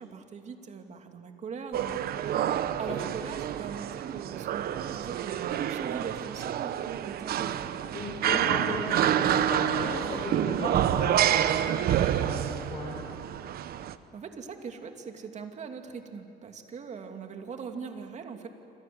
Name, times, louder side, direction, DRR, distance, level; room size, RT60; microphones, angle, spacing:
voice 1, 0.0-2.4 2.8-8.0 14.1-18.5, right 5 dB, 45° right, 5 dB, 2.7 m, -41 dB
sound 1, 1.7-13.9, right 10 dB, 65° right, 1.1 m, -28 dB
voice 2, 7.9-13.0, left 2 dB, 40° left, -1 dB, 5.3 m, -36 dB
28.0 x 25.5 x 7.9 m, 2.6 s
cardioid pair, 110°, 17 cm